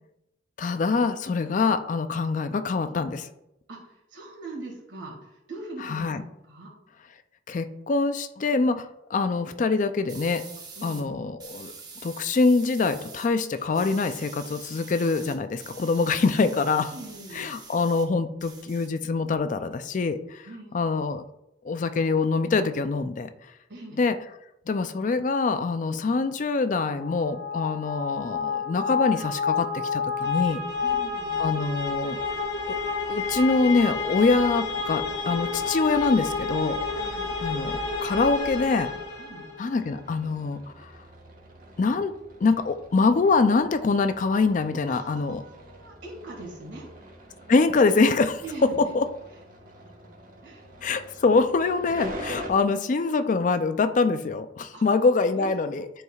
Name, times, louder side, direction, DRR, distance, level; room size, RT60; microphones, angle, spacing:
voice 1, 0.6-3.3 5.9-6.2 7.5-10.4 10.8-11.7 12.0-16.9 17.3-20.5 20.7-21.2 21.6-23.3 24.0-24.2 24.7-30.6 31.4-32.2 32.7-32.8 33.1-36.8 37.4-38.9 39.6-40.9 41.8-42.1 42.4-45.4 47.5-49.1 50.8-55.8, left 4 dB, 40° left, 10 dB, 0.4 m, -24 dB
voice 2, 3.7-6.7 10.8-11.1 16.9-17.6 20.4-20.9 23.7-24.0 30.8-31.4 37.0-37.4 39.2-39.5 44.9-46.9 48.4-48.9 50.4-50.7 54.7-54.8 55.3-55.8, right 2 dB, 70° right, -2 dB, 1.9 m, -42 dB
sound 1, 10.1-11.0 11.4-13.3 13.5-18.1 18.4-19.4, right 4 dB, 20° right, 0.8 m, -45 dB
sound 2, 26.9-39.7, left 5 dB, 60° left, 1.5 m, -29 dB
sound 3, 39.7-52.5, right 1 dB, 50° right, 1.3 m, -44 dB
10.5 x 4.7 x 2.4 m, 0.85 s
head